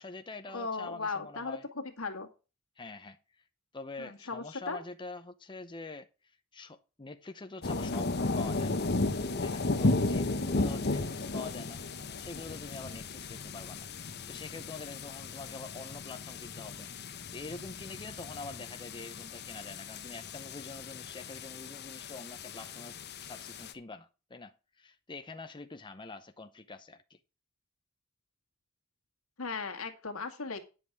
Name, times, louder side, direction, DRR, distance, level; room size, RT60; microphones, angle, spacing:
voice 1, 0.0-1.7 2.8-3.2 3.7-8.8 9.4-11.8 12.2-27.2, left 3 dB, 20° left, 0.7 m, -45 dB
voice 2, 0.5-2.3 4.0-4.8 29.4-30.6, left 4 dB, 70° left, 2.0 m, -37 dB
sound 1, 7.6-23.7, left 2 dB, 50° left, 1.1 m, -35 dB
10.5 x 7.8 x 4.7 m
head